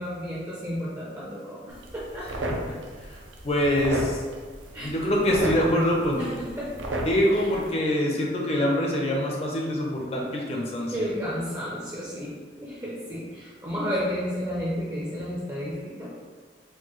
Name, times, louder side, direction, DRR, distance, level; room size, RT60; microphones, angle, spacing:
voice 1, 0.0-2.3 4.7-4.9 6.2-6.7 7.3-7.5 10.9-16.1, equal, 20° right, -6 dB, 0.5 m, -32 dB
sound 1, 1.7-7.7, right 1 dB, 80° right, 0.5 m, -34 dB
voice 2, 3.0-4.2 4.8-6.2 7.1-11.1, equal, 30° left, -1 dB, 0.5 m, -25 dB
4.4 x 2.2 x 3.0 m, 1.5 s
head